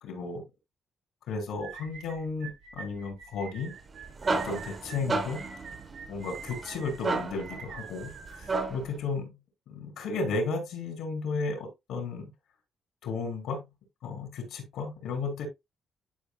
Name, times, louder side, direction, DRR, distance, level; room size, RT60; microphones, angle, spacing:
voice 1, 0.0-0.4 1.3-3.7 4.3-5.5 6.1-9.3 9.7-12.3 13.0-13.6 14.0-15.5, left 3 dB, 80° left, 3.7 m, -34 dB
sound 1, 1.6-9.0, right 7 dB, 75° right, 2.7 m, -46 dB
sound 2, 3.8-9.0, right 3 dB, 35° right, 1.6 m, -33 dB
11.5 x 5.3 x 2.3 m
cardioid pair, 90°, 0 cm